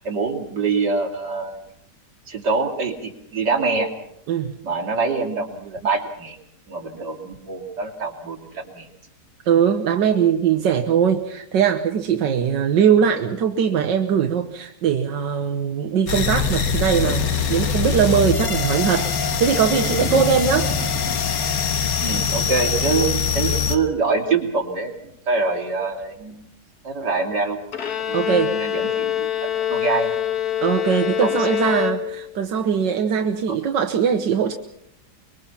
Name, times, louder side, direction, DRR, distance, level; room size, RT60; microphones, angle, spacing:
voice 1, 0.0-1.6 2.3-3.9 4.6-6.4 6.7-8.9 22.0-26.5 26.8-27.6 28.1-30.2 31.2-31.8 33.5-33.6, right 4 dB, 70° right, 1 dB, 3.5 m, -25 dB
voice 2, 9.5-20.7 28.1-28.6 30.6-34.5, right 7 dB, 85° right, 5 dB, 1.7 m, -20 dB
sound 1, 16.1-23.8, left 6 dB, 85° left, 2.1 m, -23 dB
Thunder, 19.0-24.4 24.6-24.7 25.0-25.1 25.3-25.4 26.0-26.3, right 3 dB, 45° right, 5.7 m, -38 dB
Bowed string instrument, 27.7-32.4, left 10 dB, 60° left, 1.8 m, -25 dB
24.5 x 22.5 x 5.8 m, 0.75 s
omnidirectional pair, 1.9 m